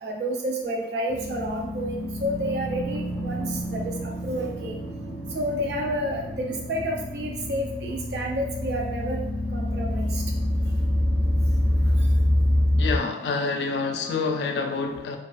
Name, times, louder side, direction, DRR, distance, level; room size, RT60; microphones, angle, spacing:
voice 1, 0.0-4.8 5.3-9.2 9.5-10.2 14.1-14.2, right 1 dB, 70° right, 0.5 m, -30 dB
sound 1, 1.1-13.0, left 1 dB, 10° right, 0.5 m, -26 dB
voice 2, 12.8-15.2, left 4 dB, 75° left, 0.3 m, -27 dB
2.3 x 2.3 x 2.4 m
head